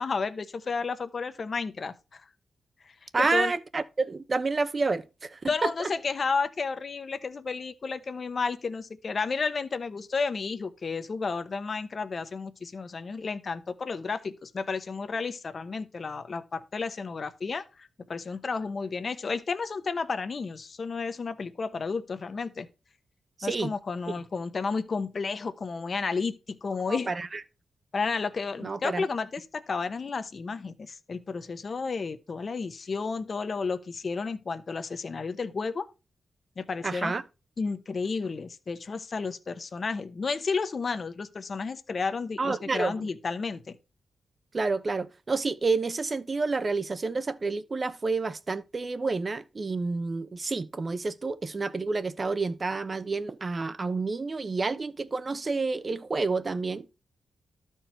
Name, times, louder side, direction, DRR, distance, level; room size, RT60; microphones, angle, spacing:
voice 1, 0.0-2.2 2.8-2.9 3.2-3.5 5.5-22.7 23.4-27.1 27.9-35.9 36.6-37.1 37.6-43.8, left 4 dB, 50° left, 0.9 m, -32 dB
voice 2, 3.1-5.9 23.4-23.7 24.1-24.2 26.9-27.4 28.6-29.1 36.8-37.2 42.4-43.1 44.5-56.9, right 3 dB, 35° right, 0.8 m, -29 dB
12.5 x 4.6 x 4.5 m
cardioid pair, 90°, 0 cm